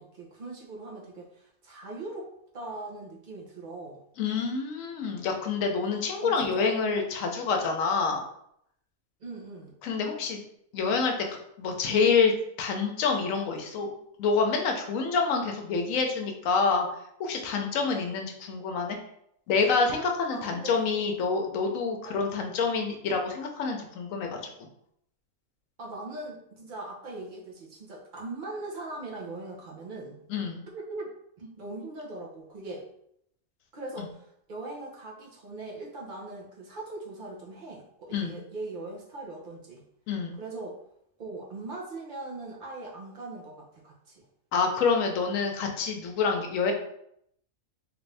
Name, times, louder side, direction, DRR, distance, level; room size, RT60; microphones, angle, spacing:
voice 1, 0.0-2.3 2.5-4.0 6.2-6.7 9.2-9.7 20.3-20.9 22.0-22.2 25.8-30.2 30.7-32.8 33.7-39.8 40.4-40.8 41.2-44.2, right 2 dB, 45° right, -2 dB, 0.8 m, -40 dB
voice 2, 4.2-8.2 9.8-10.4 10.7-11.1 11.6-13.9 14.2-16.9 17.2-19.0 19.5-24.5 30.3-30.6 38.1-38.4 40.1-40.4 44.5-46.7, left 5 dB, 75° left, 3 dB, 1.0 m, -27 dB
3.2 x 2.6 x 3.2 m, 0.73 s
omnidirectional pair, 1.4 m